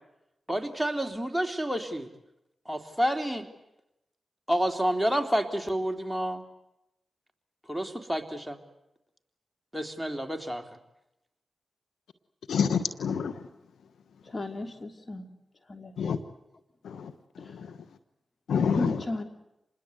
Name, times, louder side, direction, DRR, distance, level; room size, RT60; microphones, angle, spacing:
voice 1, 0.5-2.1 2.7-3.5 4.5-6.4 7.7-8.6 9.7-10.6, equal, ahead, 6 dB, 3.4 m, -29 dB
voice 2, 12.5-13.5 16.0-16.2 16.8-17.8 18.5-19.0, left 6 dB, 85° left, 11 dB, 1.2 m, -28 dB
voice 3, 14.2-15.3 15.7-15.9 17.4-17.5 18.7-19.2, left 2 dB, 40° left, 7 dB, 3.1 m, -35 dB
27.0 x 21.0 x 8.1 m, 0.86 s
supercardioid pair, 40°, 0 cm